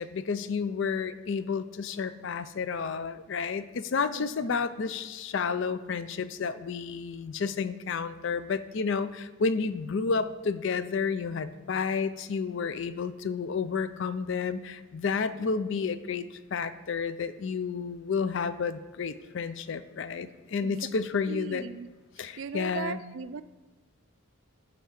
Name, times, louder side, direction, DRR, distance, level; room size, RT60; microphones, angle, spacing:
voice 1, 0.0-16.3 16.5-21.7 22.2-23.0, left 5 dB, 55° left, 13 dB, 0.4 m, -31 dB
voice 2, 4.1-4.6 20.6-20.9 21.3-21.9 22.4-23.4, right 6 dB, 60° right, 14 dB, 0.4 m, -38 dB
9.9 x 4.6 x 5.8 m, 1.2 s
head